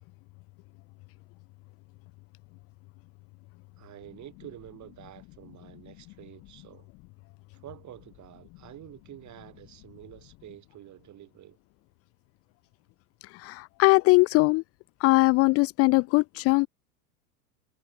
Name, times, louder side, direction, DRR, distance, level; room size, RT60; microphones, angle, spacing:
voice 1, 3.8-6.9 7.5-11.6, right 12 dB, 40° right, 7.9 m, -48 dB
voice 2, 13.2-14.6 15.0-16.7, left 24 dB, 35° left, 0.4 m, -21 dB
hypercardioid pair, 105°, 45 cm